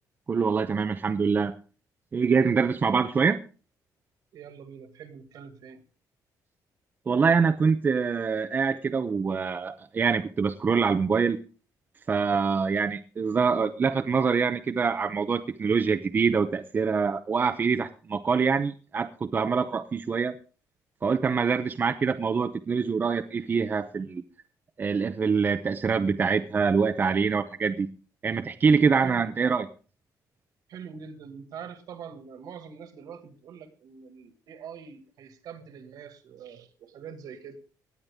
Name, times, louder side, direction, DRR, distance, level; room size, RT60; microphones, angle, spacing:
voice 1, 0.3-1.6 2.1-3.4 7.1-11.4 12.1-20.4 21.0-24.2 24.8-27.9 28.2-29.7, right 5 dB, 25° right, 0.7 m, -25 dB
voice 2, 4.3-5.8 29.0-29.4 30.7-37.6, right 7 dB, 65° right, 2.0 m, -44 dB
18.0 x 9.7 x 3.6 m
cardioid pair, 145°, 7 cm